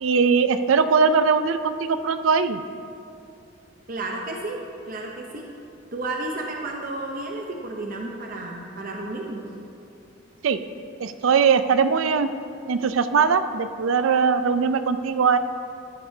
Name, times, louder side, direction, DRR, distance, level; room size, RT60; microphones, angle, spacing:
voice 1, 0.0-2.6 10.4-10.6 11.0-12.3 12.7-15.4, right 5 dB, 85° right, 11 dB, 0.4 m, -20 dB
voice 2, 3.9-4.6 4.9-5.4 5.9-9.5, right 2 dB, 45° right, 0 dB, 0.7 m, -32 dB
13.5 x 7.8 x 2.7 m, 2.5 s
head